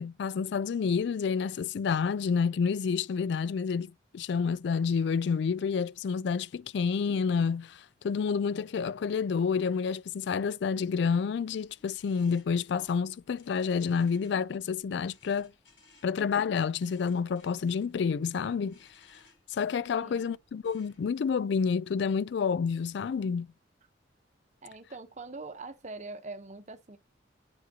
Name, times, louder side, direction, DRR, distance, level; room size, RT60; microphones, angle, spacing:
voice 1, 0.0-15.5 16.0-18.8 19.1-19.2 19.5-23.5, left 6 dB, 65° left, 0.3 m, -29 dB
sound 1, 11.5-21.2, left 3 dB, 80° left, 4.7 m, -64 dB
voice 2, 20.0-20.3 24.6-27.0, right 3 dB, 40° right, 0.9 m, -43 dB
9.4 x 4.9 x 2.7 m
head